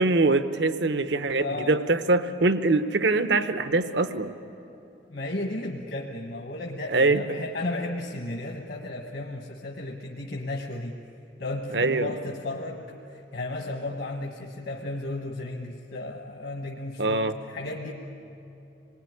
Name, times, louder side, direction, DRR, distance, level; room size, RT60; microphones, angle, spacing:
voice 1, 0.0-4.3 6.9-7.4 11.7-12.1 17.0-17.3, right 3 dB, 75° right, 10 dB, 0.9 m, -23 dB
voice 2, 1.4-1.8 5.1-11.0 11.4-17.9, left 2 dB, 65° left, 1 dB, 1.5 m, -34 dB
27.0 x 20.0 x 9.7 m, 3.0 s
head